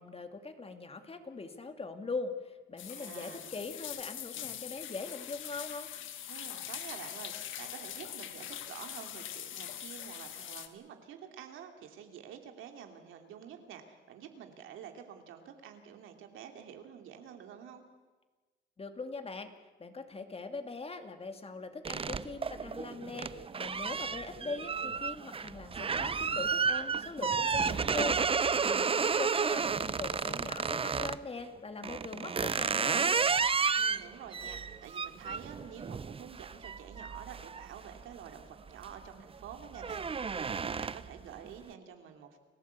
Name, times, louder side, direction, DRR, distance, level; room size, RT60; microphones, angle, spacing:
voice 1, 0.0-5.9 18.8-19.5 19.8-33.2, left 3 dB, 30° left, 7 dB, 2.3 m, -41 dB
sound 1, 2.8-10.7, left 11 dB, 80° left, 1.7 m, -43 dB
voice 2, 2.9-3.5 6.3-17.8 28.7-29.2 33.7-42.4, right 8 dB, 85° right, 5 dB, 2.8 m, -49 dB
sound 2, 21.8-31.2 31.8-38.3 38.7-39.1 39.4-41.2, right 5 dB, 30° right, 0.6 m, -32 dB
29.0 x 15.0 x 8.2 m, 1.3 s
cardioid pair, 90°, 20 cm